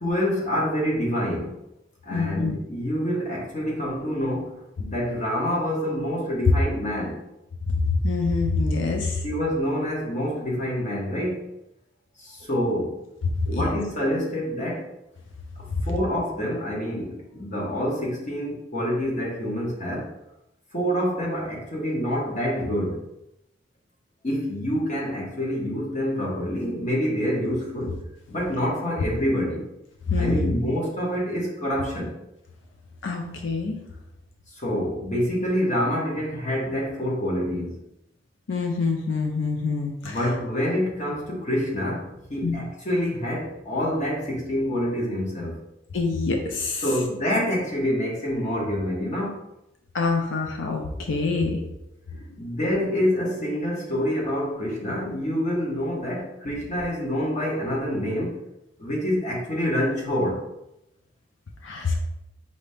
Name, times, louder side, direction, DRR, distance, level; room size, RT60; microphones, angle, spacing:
voice 1, 0.0-1.5 2.0-7.2 9.2-11.4 12.2-13.0 13.5-14.9 15.9-20.1 20.7-23.0 24.2-28.0 28.3-29.6 30.2-32.1 34.6-37.7 40.0-45.6 46.8-49.4 52.4-58.4 58.8-60.4, equal, 40° left, -3 dB, 1.2 m, -27 dB
voice 2, 2.1-2.6 6.5-6.6 7.8-9.2 13.5-13.7 15.7-15.8 30.1-30.6 33.0-33.8 38.5-40.2 42.4-42.5 45.9-47.0 49.9-51.6 61.6-62.0, left 3 dB, 80° left, 2 dB, 0.5 m, -25 dB
4.9 x 2.8 x 3.4 m, 0.87 s
head